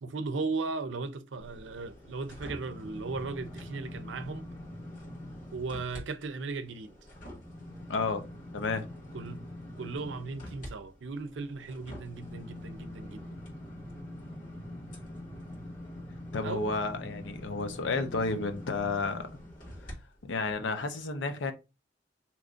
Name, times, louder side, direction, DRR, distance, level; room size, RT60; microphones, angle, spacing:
voice 1, 0.0-4.5 5.5-7.0 9.1-9.4 9.8-13.5 16.4-16.7, right 3 dB, 90° right, 0.5 m, -37 dB
sound 1, 1.4-6.0 6.4-19.9 20.4-20.5, left 1 dB, 45° left, 1.6 m, -44 dB
voice 2, 7.9-8.2 8.5-8.9 16.3-19.3 19.8-19.9 20.2-21.5, left 3 dB, 90° left, 0.6 m, -31 dB
2.9 x 2.5 x 3.7 m
head